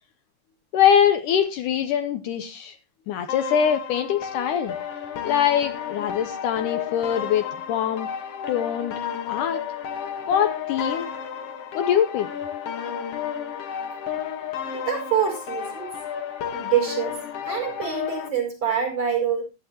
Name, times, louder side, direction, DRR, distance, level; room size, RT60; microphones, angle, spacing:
voice 1, 0.7-2.8 3.1-4.7 5.2-8.1 8.5-9.0 9.3-9.6 10.3-11.1 11.7-12.3, left 9 dB, 75° left, 8 dB, 2.1 m, -23 dB
sound 1, 3.3-18.3, left 8 dB, 55° left, 1.9 m, -32 dB
voice 2, 14.9-15.9 16.5-17.2 17.4-19.4, right 8 dB, 30° right, 1 dB, 6.0 m, -25 dB
15.5 x 11.5 x 2.9 m, 0.28 s
omnidirectional pair, 4.1 m